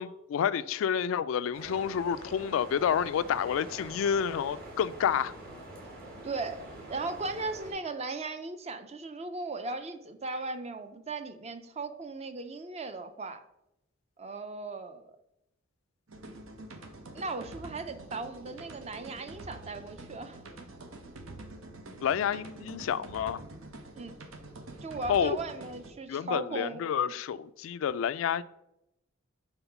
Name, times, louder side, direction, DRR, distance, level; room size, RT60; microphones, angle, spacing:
voice 1, 0.0-5.3 22.0-23.4 25.1-25.4 26.1-28.4, left 8 dB, 80° left, 0.3 m, -29 dB
sound 1, 1.5-7.7, right 1 dB, 50° right, 1.9 m, -45 dB
voice 2, 6.2-13.4 14.2-15.1 17.1-20.4 23.9-24.2 24.8-26.8, right 3 dB, 30° right, 0.5 m, -37 dB
sound 2, 16.1-25.9, right 2 dB, 85° right, 0.9 m, -46 dB
5.5 x 3.9 x 5.8 m
head